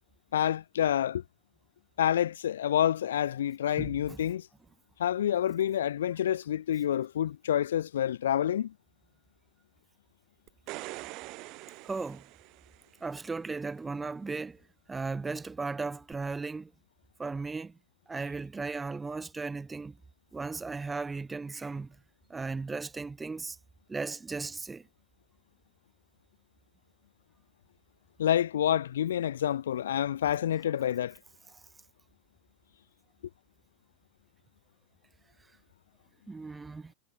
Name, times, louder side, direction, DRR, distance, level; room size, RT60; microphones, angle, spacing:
voice 1, 0.3-1.2 2.0-4.5 5.0-8.7 28.2-31.2, left 10 dB, 60° left, 0.8 m, -28 dB
voice 2, 3.8-4.2 11.8-12.2 13.0-14.6 14.9-16.7 17.2-17.8 18.1-20.0 20.3-22.0 22.3-23.6 23.9-24.9 36.3-36.9, right 4 dB, 10° right, 1.8 m, -36 dB
sound 1, 10.5-13.0 16.1-16.2, right 22 dB, 40° right, 4.0 m, -44 dB
figure-of-eight pair, 90°, 0 cm